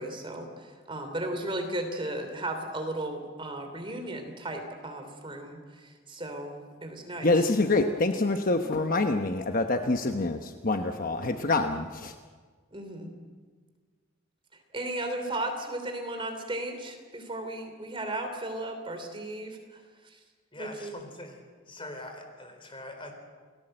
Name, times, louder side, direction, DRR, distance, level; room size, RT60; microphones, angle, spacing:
voice 1, 0.0-7.3 12.7-13.1 14.7-20.2 20.6-20.9, right 1 dB, 25° right, 5 dB, 3.3 m, -35 dB
voice 2, 7.2-12.1, left 2 dB, 45° left, 6 dB, 1.1 m, -26 dB
voice 3, 20.5-21.4 21.7-23.1, left 1 dB, 25° left, 5 dB, 4.0 m, -43 dB
29.0 x 18.5 x 7.9 m, 1.5 s
head